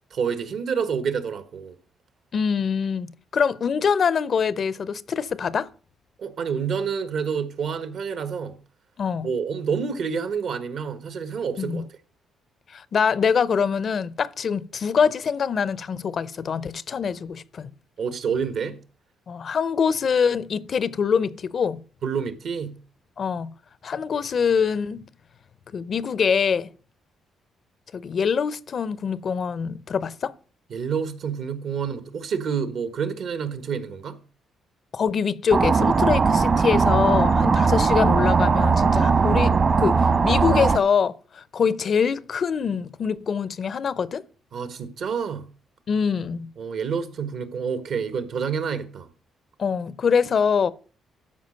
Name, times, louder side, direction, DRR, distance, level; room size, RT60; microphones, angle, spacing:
voice 1, 0.1-1.8 6.2-8.6 9.2-11.8 18.0-18.8 22.0-22.8 30.7-34.2 44.5-45.5 46.6-49.1, right 6 dB, 65° right, 1.4 m, -28 dB
voice 2, 2.3-5.7 9.0-9.3 11.6-11.8 12.7-17.7 19.3-21.8 23.2-23.5 23.8-25.0 25.7-26.7 27.9-30.3 34.9-44.2 45.9-46.5 49.6-50.7, left 6 dB, 50° left, 0.6 m, -24 dB
sound 1, 35.5-40.8, right 4 dB, 45° right, 1.2 m, -19 dB
13.0 x 5.0 x 6.4 m
cardioid pair, 90°, 0 cm